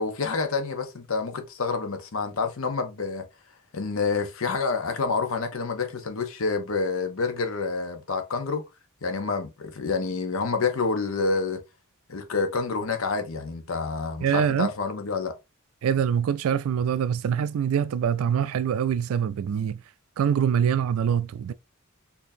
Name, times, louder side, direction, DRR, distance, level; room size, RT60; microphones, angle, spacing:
voice 1, 0.0-3.2 3.7-8.6 9.0-11.6 12.1-15.3, left 4 dB, 70° left, 0.8 m, -28 dB
voice 2, 14.2-14.7 15.8-19.8 20.2-21.5, right 8 dB, 75° right, 0.3 m, -24 dB
4.3 x 2.8 x 2.7 m
head